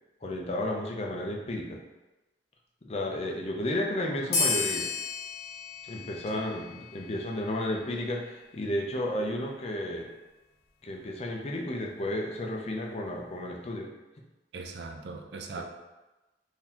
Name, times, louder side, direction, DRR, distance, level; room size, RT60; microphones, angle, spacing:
voice 1, 0.2-1.8 2.8-4.9 5.8-10.1 10.8-13.9 15.6-15.7, left 1 dB, 35° left, 0 dB, 0.4 m, -32 dB
sound 1, 4.3-7.4, left 4 dB, 65° left, 0.8 m, -32 dB
voice 2, 14.5-15.6, right 4 dB, 65° right, 4 dB, 0.4 m, -40 dB
3.8 x 2.7 x 2.8 m, 1.1 s
head